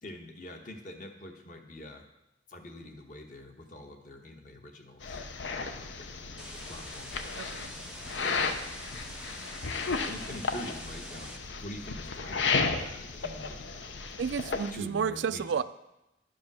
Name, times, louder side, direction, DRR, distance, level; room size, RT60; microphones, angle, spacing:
voice 1, 0.0-2.0 2.5-5.2 5.6-7.4 10.1-11.3 11.6-14.0 14.7-15.6, left 1 dB, 45° left, 4 dB, 1.0 m, -45 dB
sound 1, 5.0-14.7, left 4 dB, 80° left, 0.7 m, -34 dB
sound 2, 6.4-11.4, right 2 dB, 5° right, 0.4 m, -46 dB
voice 2, 7.3-7.7 14.2-15.6, right 6 dB, 75° right, 14 dB, 0.4 m, -31 dB
11.0 x 5.3 x 6.0 m, 0.93 s
head